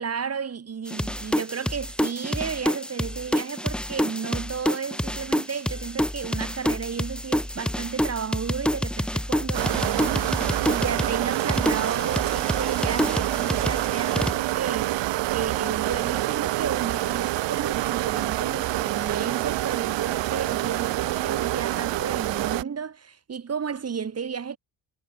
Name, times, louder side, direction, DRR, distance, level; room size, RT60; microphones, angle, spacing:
voice 1, 0.0-24.6, right 6 dB, 35° right, 2.3 m, -33 dB
sound 1, 0.9-14.3, equal, ahead, 2.5 m, -28 dB
sound 2, 9.5-22.6, right 16 dB, 80° right, 1.5 m, -27 dB
cardioid pair, 110°, 42 cm